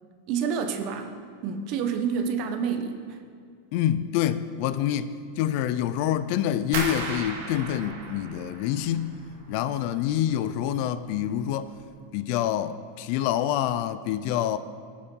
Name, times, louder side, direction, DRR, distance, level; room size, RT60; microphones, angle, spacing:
voice 1, 0.3-1.1 1.4-3.2, right 6 dB, 50° right, 6 dB, 1.2 m, -28 dB
voice 2, 3.7-9.2 9.5-11.7 12.1-14.6, left 11 dB, 55° left, 13 dB, 0.5 m, -27 dB
sound 1, 6.7-9.6 9.9-10.6 10.9-11.4 11.8-11.9, right 4 dB, 70° right, 2.4 m, -36 dB
19.5 x 7.3 x 4.6 m, 2.2 s
supercardioid pair, 130°, 0 cm